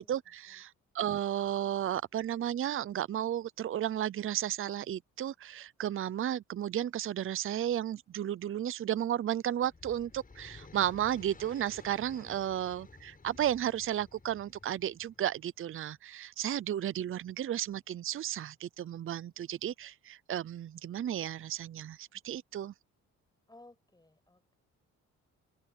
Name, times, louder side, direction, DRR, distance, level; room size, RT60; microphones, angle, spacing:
voice 1, 0.0-22.7, right 11 dB, 45° right, 0.6 m, -33 dB
sound 1, 9.4-15.4, left 4 dB, 30° left, 6.3 m, -54 dB
voice 2, 23.5-24.5, left 2 dB, 15° left, 7.4 m, -58 dB
open air
cardioid pair, 90°, 30 cm